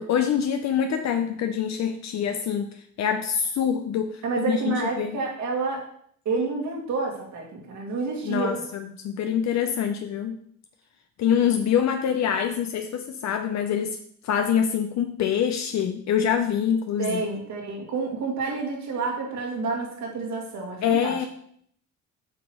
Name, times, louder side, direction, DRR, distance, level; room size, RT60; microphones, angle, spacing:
voice 1, 0.0-5.2 8.2-10.4 11.2-14.0 14.2-17.2 20.8-21.3, left 8 dB, 65° left, 6 dB, 0.6 m, -25 dB
voice 2, 4.2-5.9 6.3-8.6 17.0-21.2, right 4 dB, 70° right, 0 dB, 2.1 m, -29 dB
8.9 x 3.0 x 6.2 m, 0.66 s
cardioid pair, 90°, 30 cm